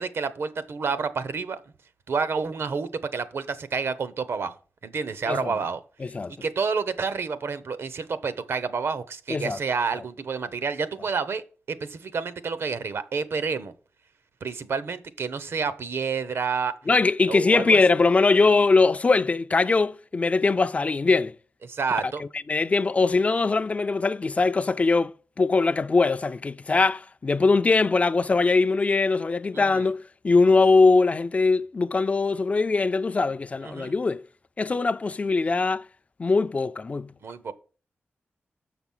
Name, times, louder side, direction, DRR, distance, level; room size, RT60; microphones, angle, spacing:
voice 1, 0.0-1.6 2.1-4.5 4.8-5.8 6.4-13.7 14.4-16.8 17.3-17.8 21.6-22.2 29.5-29.9 33.6-33.9 37.2-37.5, right 5 dB, 65° right, 0.7 m, -29 dB
voice 2, 6.0-6.3 9.3-9.6 16.9-21.3 22.2-34.2 34.6-35.8 36.2-37.1, left 3 dB, 30° left, 0.3 m, -21 dB
6.8 x 5.9 x 5.4 m
wide cardioid pair, 125°, 4 cm